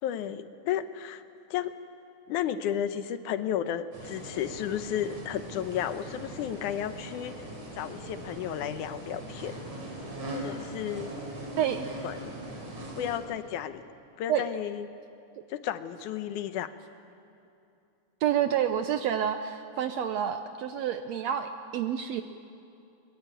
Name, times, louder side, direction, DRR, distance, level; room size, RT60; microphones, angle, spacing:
voice 1, 0.0-1.2 1.5-1.8 2.3-7.5 7.7-9.6 10.3-11.1 12.0-12.3 13.0-13.8 14.2-14.9 15.5-16.7, left 10 dB, 75° left, 11 dB, 2.2 m, -33 dB
sound 1, 3.9-13.2, right 1 dB, 50° right, 5.2 m, -40 dB
voice 2, 11.6-11.9 14.3-14.4 18.2-22.2, right 9 dB, 75° right, 8 dB, 1.6 m, -28 dB
23.0 x 22.0 x 9.1 m, 2.7 s
omnidirectional pair, 3.7 m